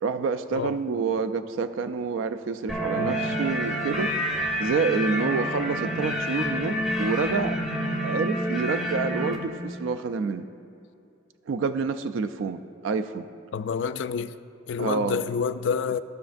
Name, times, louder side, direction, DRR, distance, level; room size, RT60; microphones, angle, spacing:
voice 1, 0.0-4.1 4.6-7.6 8.0-10.5 11.5-13.3 14.8-15.3, right 5 dB, 80° right, 0.3 m, -28 dB
sound 1, 2.7-9.4, equal, ahead, 1.0 m, -28 dB
voice 2, 13.5-14.3 14.7-16.0, left 6 dB, 65° left, 0.3 m, -28 dB
15.0 x 6.0 x 2.5 m
head